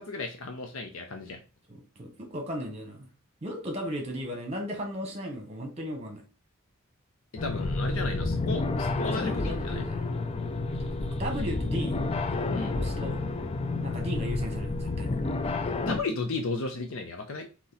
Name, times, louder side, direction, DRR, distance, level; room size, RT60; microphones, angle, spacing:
voice 1, 0.0-1.4 7.3-9.8 12.5-12.7 15.9-17.5, left 3 dB, 65° left, 5 dB, 0.6 m, -34 dB
voice 2, 1.7-3.1 3.4-6.2 9.1-10.0 10.8-12.0 12.7-13.2 13.8-15.2, equal, 30° right, 4 dB, 1.3 m, -36 dB
sound 1, 7.4-16.0, left 3 dB, 25° left, 0.4 m, -30 dB
4.0 x 3.0 x 4.0 m, 0.33 s
head